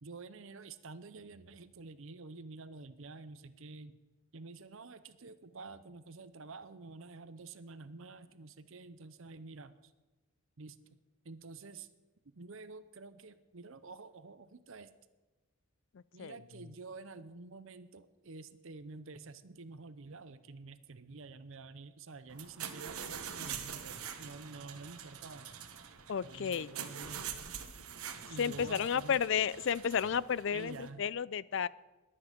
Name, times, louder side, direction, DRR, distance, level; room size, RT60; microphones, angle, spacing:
voice 1, 0.0-4.0 4.3-9.9 10.6-10.9 11.2-11.9 12.2-14.9 16.1-25.5 26.2-27.5 28.3-29.2 30.5-31.1, right 3 dB, 65° right, 13 dB, 0.7 m, -49 dB
sound 1, 22.3-30.9, right 8 dB, 80° right, 1.3 m, -45 dB
voice 2, 26.1-26.7 28.4-31.7, left 7 dB, 55° left, 20 dB, 0.4 m, -32 dB
21.5 x 8.8 x 5.1 m, 1.2 s
head